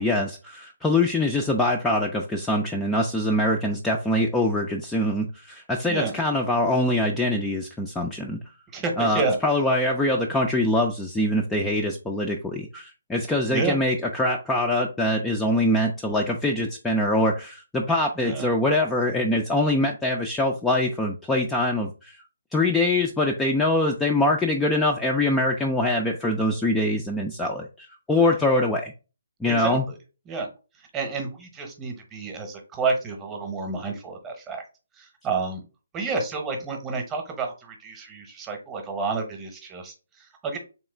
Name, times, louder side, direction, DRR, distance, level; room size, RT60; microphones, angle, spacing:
voice 1, 0.0-8.4 9.0-22.2 22.5-28.9 29.4-29.8, left 1 dB, 5° left, 0 dB, 0.4 m, -24 dB
voice 2, 8.7-9.4 13.5-13.8 18.2-18.5 28.2-28.3 29.4-30.0 30.3-30.5 30.8-34.6 34.9-35.6 35.9-40.6, right 4 dB, 15° right, 3 dB, 0.9 m, -30 dB
3.6 x 3.0 x 3.3 m, 0.32 s
figure-of-eight pair, 140°, 0 cm